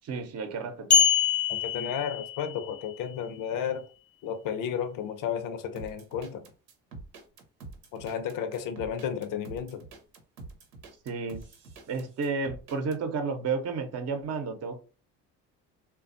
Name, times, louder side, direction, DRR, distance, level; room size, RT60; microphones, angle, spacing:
voice 1, 0.0-1.1 11.0-11.4 11.9-14.8, right 4 dB, 45° right, 0.7 m, -32 dB
sound 1, 0.9-2.7, left 6 dB, 20° left, 0.3 m, -24 dB
voice 2, 1.5-3.9 4.2-6.5 7.9-9.8, left 8 dB, 60° left, 0.6 m, -33 dB
sound 2, 5.8-13.0, right 3 dB, 90° right, 0.8 m, -46 dB
3.2 x 2.3 x 2.5 m
supercardioid pair, 75°, 36 cm